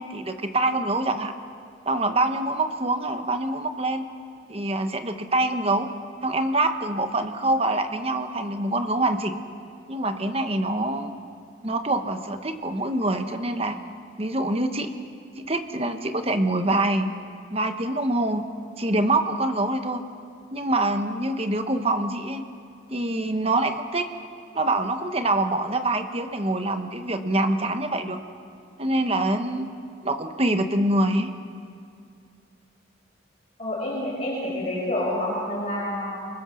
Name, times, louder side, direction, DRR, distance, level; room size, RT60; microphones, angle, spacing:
voice 1, 0.0-1.3 1.8-4.1 4.5-5.9 6.2-9.3 9.9-11.1 11.6-13.8 14.2-14.9 15.4-17.1 17.5-18.4 18.8-20.0 20.5-22.4 22.9-24.1 24.5-28.2 28.8-29.7 30.0-31.3, right 2 dB, 30° right, 7 dB, 1.2 m, -25 dB
voice 2, 33.6-36.2, left 1 dB, 30° left, -6 dB, 5.3 m, -28 dB
26.0 x 21.5 x 6.4 m, 2.4 s
head